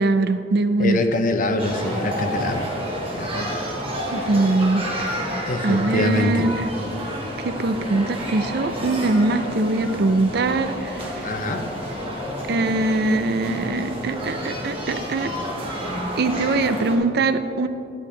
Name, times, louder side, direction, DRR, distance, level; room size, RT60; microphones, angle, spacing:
voice 1, 0.0-1.0 4.1-4.9 5.6-6.6 7.4-11.3 12.5-15.3 16.2-17.7, right 2 dB, 60° right, 10 dB, 0.5 m, -22 dB
voice 2, 0.8-2.7 3.1-3.7 5.5-6.5 11.2-11.6, left 1 dB, 50° left, 6 dB, 0.7 m, -24 dB
sound 1, 1.6-17.0, equal, 30° right, 1.7 m, -30 dB
12.0 x 10.5 x 3.3 m, 2.7 s
head